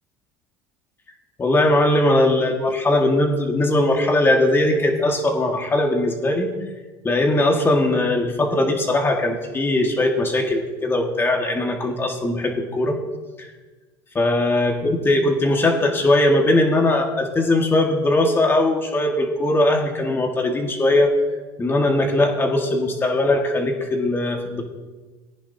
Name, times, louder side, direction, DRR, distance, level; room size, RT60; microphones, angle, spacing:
voice 1, 1.4-6.5 7.0-13.0 13.4-13.5 14.2-21.1 21.6-24.6, left 1 dB, 20° left, 2 dB, 1.8 m, -20 dB
18.5 x 9.9 x 2.8 m, 1.3 s
supercardioid pair, 115°, 11 cm